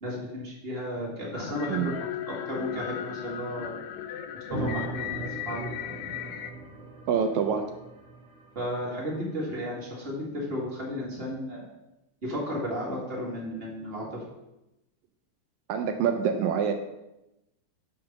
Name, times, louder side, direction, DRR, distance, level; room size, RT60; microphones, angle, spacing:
voice 1, 0.0-1.9 2.3-3.7 4.5-5.7 8.5-11.7 12.2-14.2, equal, 25° right, -4 dB, 1.4 m, -34 dB
sound 1, 1.3-6.5, left 11 dB, 80° left, 1.8 m, -36 dB
sound 2, 4.5-9.2, right 2 dB, 55° right, 1.7 m, -38 dB
voice 2, 7.1-7.7 15.7-16.7, right 7 dB, 80° right, 5 dB, 1.8 m, -26 dB
7.7 x 3.6 x 5.8 m, 0.92 s
omnidirectional pair, 3.5 m